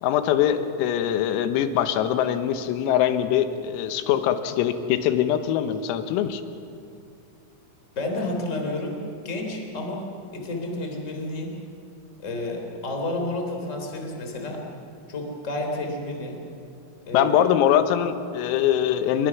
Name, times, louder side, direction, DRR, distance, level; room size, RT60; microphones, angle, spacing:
voice 1, 0.0-6.4 17.1-19.3, left 10 dB, 85° left, 9 dB, 3.9 m, -22 dB
voice 2, 7.9-10.1 10.3-11.5 12.2-14.6 15.1-16.4 17.1-17.4, left 2 dB, 15° left, 2 dB, 2.9 m, -30 dB
28.5 x 23.0 x 6.0 m, 2.5 s
omnidirectional pair, 6.0 m